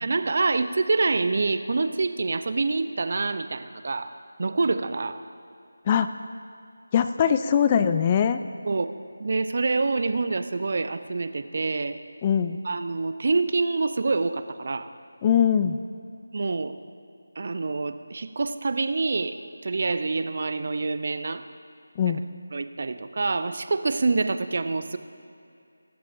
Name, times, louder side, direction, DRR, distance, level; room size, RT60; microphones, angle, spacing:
voice 1, 0.0-4.1 4.4-5.2 8.6-8.9 9.2-12.0 12.6-14.9 16.3-16.8 17.4-19.4 19.6-21.4 22.0-22.1 22.5-25.0, right 3 dB, 45° right, 11 dB, 0.6 m, -26 dB
voice 2, 6.9-8.4 12.2-12.6 15.2-15.8 22.0-22.2, left 8 dB, 20° left, 10 dB, 0.3 m, -21 dB
24.5 x 12.5 x 2.6 m, 2.5 s
figure-of-eight pair, 160°, 0 cm